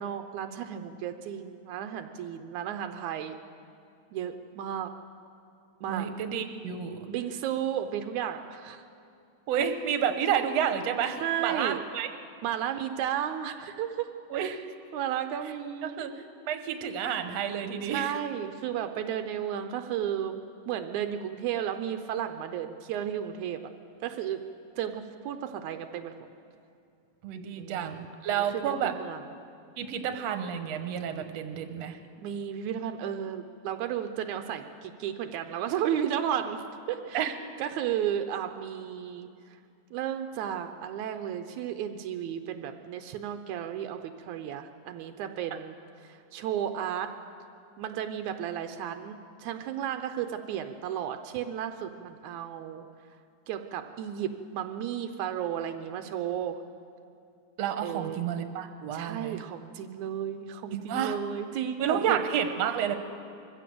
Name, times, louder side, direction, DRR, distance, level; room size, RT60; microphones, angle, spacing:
voice 1, 0.0-3.4 4.1-4.9 5.8-6.1 7.1-8.8 11.2-11.8 12.4-14.6 14.9-16.0 17.8-23.6 24.0-24.4 24.8-26.1 27.6-28.0 28.3-29.2 32.2-36.6 36.9-39.3 39.9-45.8 46.0-47.1 47.8-52.8 53.5-56.6 57.8-58.2 58.9-62.2, right 9 dB, 85° right, 7 dB, 2.2 m, -33 dB
voice 2, 5.9-7.0 9.5-12.1 14.3-14.6 15.8-16.1 16.5-18.2 27.2-28.9 29.8-32.0 37.1-37.3 57.6-59.4 60.7-61.2 61.8-63.0, right 8 dB, 65° right, 7 dB, 2.2 m, -30 dB
23.0 x 15.0 x 7.7 m, 2.6 s
omnidirectional pair, 3.3 m